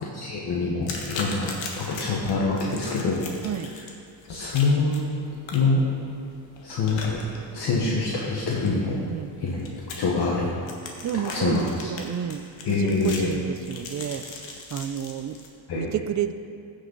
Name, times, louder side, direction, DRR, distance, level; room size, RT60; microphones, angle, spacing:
voice 1, 0.1-3.3 4.3-5.1 5.5-5.9 6.6-7.2 7.5-9.0 9.4-9.7 10.0-10.5 11.2-11.6 12.6-13.3 15.7-15.9, left 3 dB, 60° left, -4 dB, 1.4 m, -25 dB
sound 1, 0.8-15.5, left 3 dB, 75° left, 1.6 m, -40 dB
voice 2, 11.0-15.4 15.8-16.3, right 9 dB, 40° right, 11 dB, 0.5 m, -31 dB
15.5 x 6.6 x 4.0 m, 2.4 s
cardioid pair, 125°, 45 cm